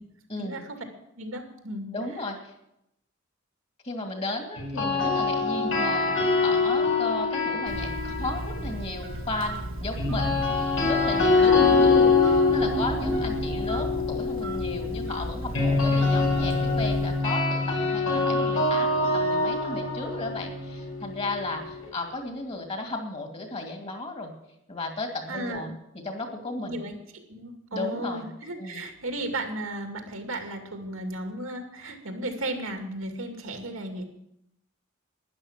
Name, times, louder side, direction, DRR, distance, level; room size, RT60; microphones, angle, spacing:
voice 1, 0.4-0.8 1.2-1.9 5.6-5.8 11.4-12.0 25.3-25.7 26.7-34.0, right 1 dB, 90° right, 4 dB, 2.4 m, -35 dB
voice 2, 1.9-2.5 3.8-10.5 10.8-24.3 24.7-25.7 26.0-26.8 27.7-28.3 28.6-28.8, left 2 dB, 30° left, 3 dB, 2.5 m, -34 dB
sound 1, 4.6-8.7 10.0-21.8, left 3 dB, 80° left, 5.6 m, -24 dB
Telephone, 7.7-17.4, right 1 dB, 75° right, 1.4 m, -36 dB
12.0 x 10.5 x 7.4 m, 0.82 s
head